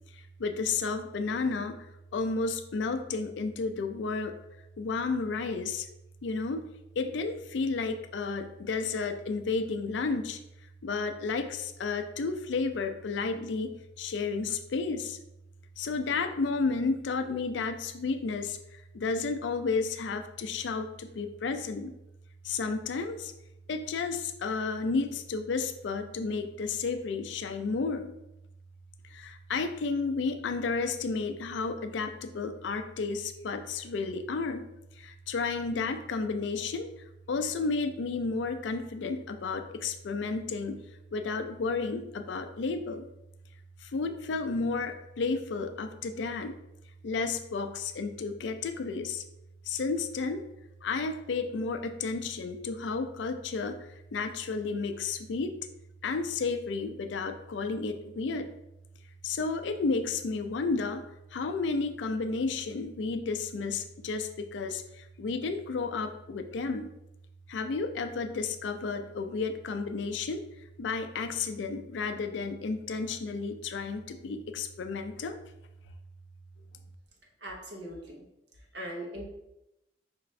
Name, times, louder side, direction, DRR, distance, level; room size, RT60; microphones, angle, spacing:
voice 1, 0.4-1.8 2.1-4.3 4.8-5.9 6.2-6.6 7.0-10.4 10.8-15.2 15.8-18.6 18.9-21.9 22.4-23.3 23.7-28.1 29.1-34.6 35.0-36.9 37.3-40.8 41.1-43.1 43.8-46.5 47.0-49.2 49.7-50.4 50.8-53.8 54.1-55.5 56.0-58.5 59.2-61.0 61.3-66.9 67.5-70.4 70.8-75.4, left 4 dB, 75° left, 8 dB, 0.4 m, -32 dB
voice 2, 77.4-78.3 78.5-79.2, equal, 70° right, 0 dB, 1.0 m, -40 dB
5.6 x 2.5 x 3.1 m, 0.88 s
head